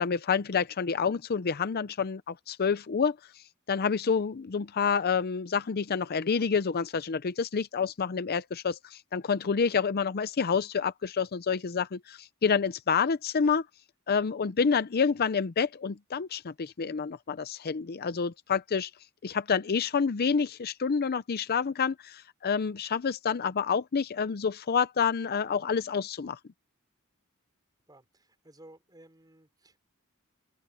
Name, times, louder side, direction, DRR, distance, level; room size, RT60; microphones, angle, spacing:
voice 1, 0.0-13.7 14.1-18.9 19.2-26.4, left 6 dB, 45° left, 0.5 m, -28 dB
voice 2, 27.9-29.8, right 1 dB, 20° right, 5.0 m, -55 dB
open air
head